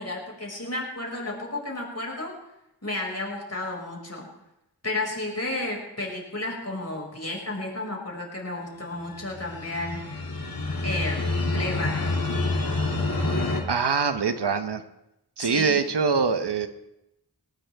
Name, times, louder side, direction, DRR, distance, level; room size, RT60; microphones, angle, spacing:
voice 1, 0.0-2.3 2.8-4.3 4.8-10.0 10.8-12.4 15.4-15.8, left 2 dB, 40° left, -1 dB, 5.7 m, -32 dB
sound 1, 9.1-13.6, left 2 dB, 60° left, 2.7 m, -27 dB
voice 2, 13.7-14.8 15.4-16.7, right 5 dB, 85° right, 9 dB, 1.1 m, -24 dB
19.5 x 19.5 x 3.5 m, 0.86 s
wide cardioid pair, 50°, 40 cm